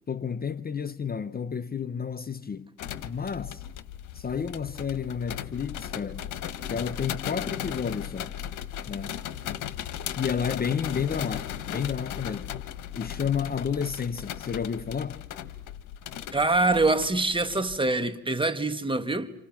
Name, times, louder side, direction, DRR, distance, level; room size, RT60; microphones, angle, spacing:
voice 1, 0.1-2.7 3.0-3.6 4.1-6.3 6.7-8.3 8.9-9.2 10.2-12.5 12.9-15.2, left 7 dB, 30° left, 0.9 m, -31 dB
sound 1, 2.8-17.8, left 10 dB, 80° left, 1.5 m, -37 dB
voice 2, 16.3-19.3, right 2 dB, 15° right, 1.7 m, -25 dB
29.0 x 28.0 x 5.9 m
cardioid pair, 90°, 30 cm